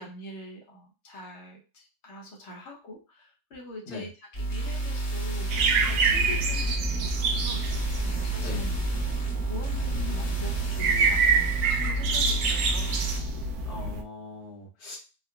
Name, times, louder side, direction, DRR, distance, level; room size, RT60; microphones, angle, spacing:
voice 1, 0.0-4.1 4.5-9.0 9.5-13.1, left 1 dB, 50° left, -2 dB, 1.1 m, -44 dB
sound 1, 4.3-13.2, right 2 dB, 25° left, 0.9 m, -30 dB
sound 2, 5.5-14.0, right 4 dB, 75° right, 1.0 m, -27 dB
voice 2, 13.7-15.0, left 2 dB, 70° left, -4 dB, 1.8 m, -40 dB
3.8 x 2.1 x 2.2 m, 0.31 s
omnidirectional pair, 1.7 m